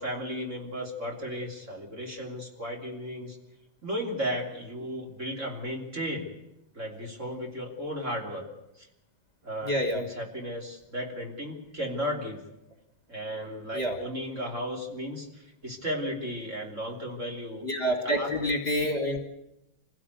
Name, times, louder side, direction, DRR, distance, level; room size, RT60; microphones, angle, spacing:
voice 1, 0.0-3.4 3.8-6.3 6.7-8.5 8.8-8.9 9.4-12.4 13.1-17.6 18.0-18.3, equal, 35° right, 0 dB, 3.5 m, -35 dB
voice 2, 9.6-10.0 13.7-14.0 17.6-19.2, equal, 30° left, 4 dB, 2.0 m, -27 dB
25.5 x 16.0 x 8.2 m, 0.90 s
omnidirectional pair, 2.2 m